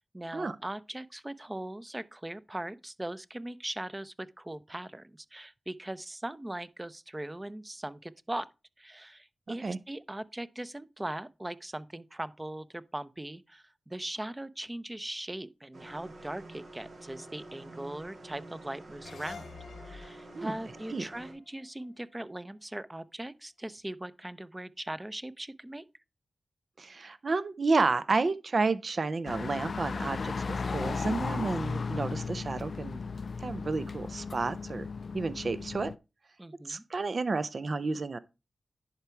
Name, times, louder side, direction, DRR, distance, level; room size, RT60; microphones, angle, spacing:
voice 1, 0.0-8.5 8.8-19.5 19.8-25.8 36.4-36.8, right 1 dB, 20° right, 0.7 m, -40 dB
voice 2, 9.5-9.8 20.3-20.5 20.9-21.1 26.8-33.0 33.4-34.9 35.1-35.9 36.6-38.2, right 3 dB, 55° right, 0.6 m, -31 dB
sound 1, 15.7-21.3, right 2 dB, 70° right, 2.5 m, -48 dB
sound 2, 19.0-22.4, left 5 dB, 90° left, 0.9 m, -50 dB
sound 3, 29.2-35.9, left 4 dB, 65° left, 0.3 m, -35 dB
10.5 x 4.7 x 4.5 m
cardioid pair, 45°, 0 cm